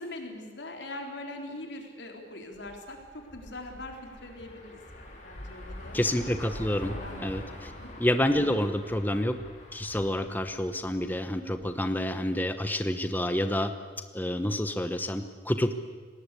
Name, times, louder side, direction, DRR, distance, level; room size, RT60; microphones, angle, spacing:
voice 1, 0.0-6.0 6.8-7.3 7.8-7.9, left 1 dB, 85° left, 2 dB, 4.0 m, -42 dB
sound 1, 2.5-11.8, left 1 dB, 45° left, 5.0 m, -45 dB
voice 2, 5.9-6.9 7.2-7.7 8.0-9.4 9.7-13.7 14.1-15.7, left 1 dB, 10° left, 9 dB, 1.0 m, -28 dB
29.5 x 19.0 x 8.4 m, 1.5 s
head